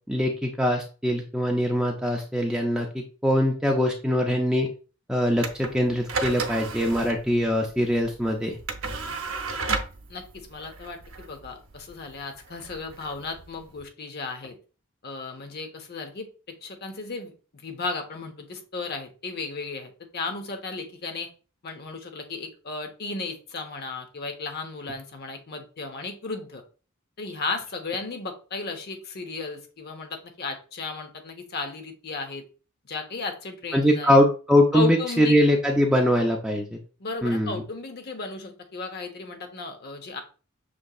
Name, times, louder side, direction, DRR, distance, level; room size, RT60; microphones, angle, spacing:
voice 1, 0.1-4.7 5.1-8.6 33.7-36.8 37.2-37.6, equal, 5° right, 0 dB, 0.4 m, -22 dB
sound 1, 5.4-13.9, right 3 dB, 70° right, 0.7 m, -34 dB
voice 2, 10.1-14.6 15.0-17.3 17.6-21.3 21.6-26.6 27.2-32.4 32.9-34.2 34.7-35.4 37.0-40.2, left 3 dB, 50° left, 6 dB, 0.8 m, -34 dB
6.2 x 2.8 x 2.3 m, 0.36 s
head